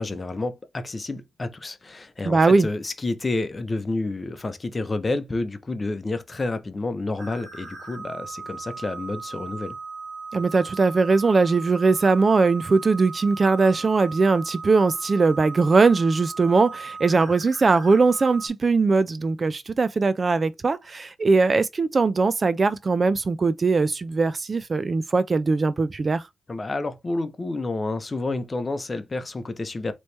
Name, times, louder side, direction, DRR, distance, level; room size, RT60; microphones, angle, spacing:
voice 1, 0.0-9.7 26.5-29.9, left 2 dB, 30° left, 0.8 m, -29 dB
voice 2, 2.3-2.7 10.3-26.3, right 4 dB, 35° right, 0.3 m, -20 dB
sound 1, 7.2-18.5, right 4 dB, 70° right, 1.2 m, -38 dB
4.1 x 3.1 x 3.3 m
cardioid pair, 95°, 0 cm